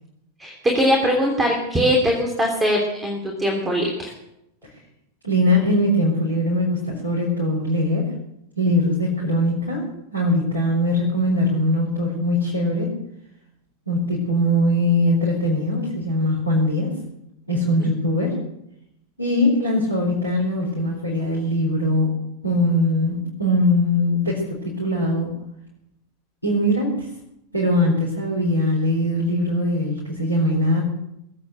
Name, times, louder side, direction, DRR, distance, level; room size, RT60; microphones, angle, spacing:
voice 1, 0.4-4.1 17.8-17.9, equal, 10° right, 1 dB, 3.1 m, -21 dB
voice 2, 5.2-8.1 8.6-9.9 10.1-12.9 13.9-17.0 17.5-18.4 19.2-22.1 22.4-25.3 26.4-27.1 27.5-31.0, left 1 dB, 85° left, -4 dB, 4.3 m, -21 dB
21.0 x 8.7 x 7.8 m, 0.85 s
figure-of-eight pair, 90°, 0 cm